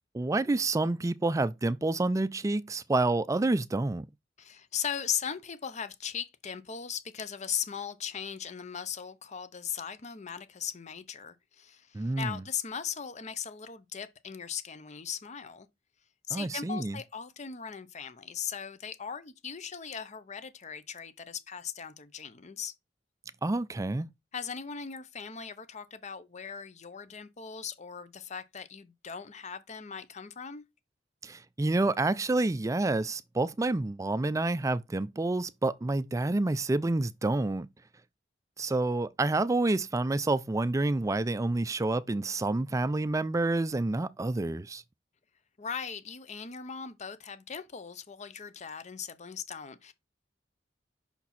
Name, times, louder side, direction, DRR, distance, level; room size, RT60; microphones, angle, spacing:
voice 1, 0.1-4.0 11.9-12.4 16.3-17.0 23.4-24.1 31.2-37.7 38.6-44.8, right 2 dB, 20° right, 0.4 m, -28 dB
voice 2, 4.4-15.7 16.3-22.7 24.3-30.6 45.6-49.9, left 7 dB, 40° left, 0.7 m, -38 dB
5.9 x 4.3 x 4.2 m
head